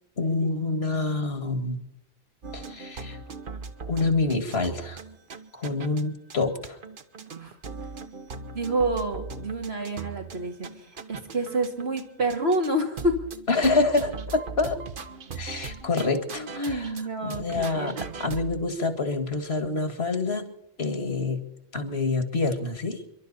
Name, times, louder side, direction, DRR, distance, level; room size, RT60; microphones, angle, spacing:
voice 1, 0.2-1.8 2.5-3.2 3.9-5.0 5.5-6.8 13.5-14.8 15.4-16.9 17.2-17.9 18.2-20.4 20.8-21.4 21.7-23.0, left 3 dB, 75° left, 9 dB, 2.1 m, -27 dB
sound 1, 2.4-6.0 6.3-6.4 6.6-12.0 12.3-12.7 13.0-17.1 17.3-18.6, right 4 dB, 55° right, 1.1 m, -39 dB
voice 2, 8.5-13.2 16.4-18.1, right 1 dB, 80° right, 2 dB, 2.7 m, -28 dB
29.0 x 12.0 x 4.2 m, 0.90 s
omnidirectional pair, 1.1 m